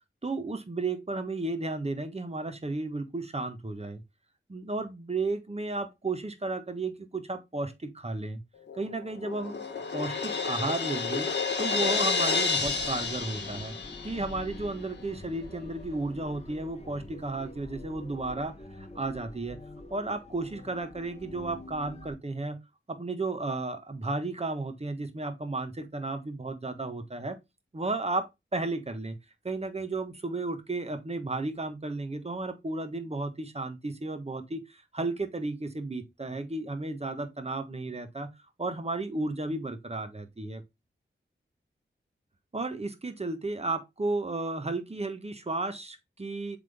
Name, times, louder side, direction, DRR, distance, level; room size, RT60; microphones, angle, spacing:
voice 1, 0.2-4.0 4.5-8.4 8.7-9.6 9.9-11.3 11.6-13.8 14.0-19.6 19.9-22.6 22.9-27.4 27.7-29.2 29.4-38.3 38.6-40.6 42.5-46.6, right 2 dB, 30° right, 1.2 m, -33 dB
Crash cymbal, 8.7-14.4, left 5 dB, 55° left, 1.3 m, -30 dB
sound 1, 12.6-22.1, left 2 dB, 30° left, 1.3 m, -46 dB
7.5 x 3.7 x 3.4 m
wide cardioid pair, 80°, 21 cm